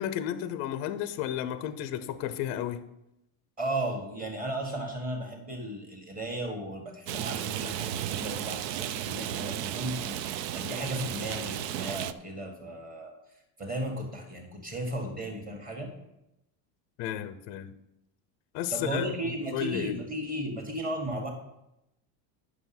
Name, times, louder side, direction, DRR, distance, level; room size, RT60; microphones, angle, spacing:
voice 1, 0.0-2.8 17.0-17.7 18.5-20.0, left 10 dB, 35° left, 12 dB, 0.5 m, -33 dB
voice 2, 3.6-13.1 13.6-15.9 18.7-21.3, right 1 dB, 15° right, 2 dB, 1.6 m, -35 dB
Rain, 7.1-12.1, right 11 dB, 80° right, 0.6 m, -34 dB
9.3 x 6.1 x 5.9 m, 0.88 s
cardioid pair, 160°, 48 cm